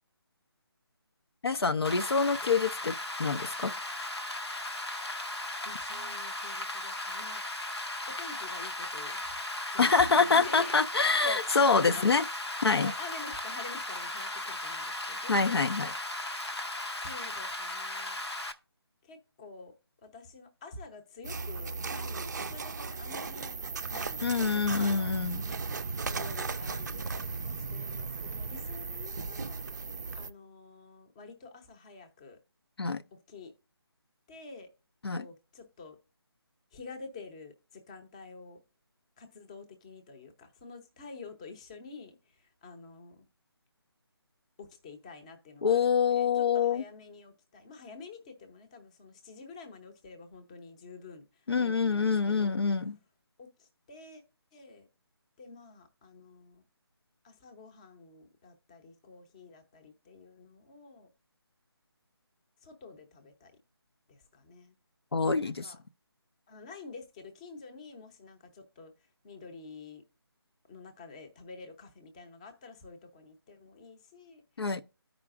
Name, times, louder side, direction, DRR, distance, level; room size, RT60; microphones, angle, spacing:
voice 1, 1.4-2.9 3.2-3.7 9.8-12.2 12.6-12.9 15.3-15.9 24.2-25.4 32.8-33.0 35.0-35.3 45.6-46.8 51.5-53.0 65.1-65.7 74.6-74.8, left 5 dB, 70° left, 0.5 m, -26 dB
Rain, 1.8-18.5, left 1 dB, 85° left, 0.9 m, -37 dB
voice 2, 5.6-7.4 8.1-9.4 9.7-12.1 12.7-15.7 17.0-18.2 19.0-19.7 20.0-23.5 23.9-25.1 25.4-25.6 26.0-29.6 30.2-32.4 33.1-33.5 34.3-34.7 35.1-36.0 36.7-38.6 39.2-43.3 44.6-52.6 53.4-54.2 54.5-54.9 55.4-56.6 57.2-61.1 62.6-63.6 64.1-64.8 65.4-65.8 66.5-68.9 69.2-70.0 70.7-74.4, left 4 dB, 15° left, 0.6 m, -48 dB
sound 1, 21.2-30.3, right 4 dB, 45° right, 0.4 m, -36 dB
14.0 x 4.9 x 2.4 m
figure-of-eight pair, 155°, 14 cm